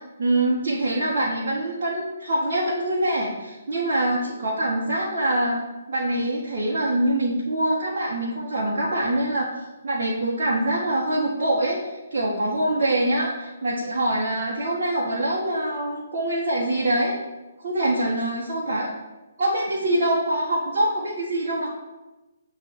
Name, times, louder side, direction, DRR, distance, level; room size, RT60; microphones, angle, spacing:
voice 1, 0.2-9.5 9.8-11.8 12.1-17.1 17.6-18.9 19.4-21.7, right 1 dB, 45° right, -5 dB, 1.5 m, -24 dB
9.6 x 3.4 x 6.9 m, 1.1 s
figure-of-eight pair, 135°, 0 cm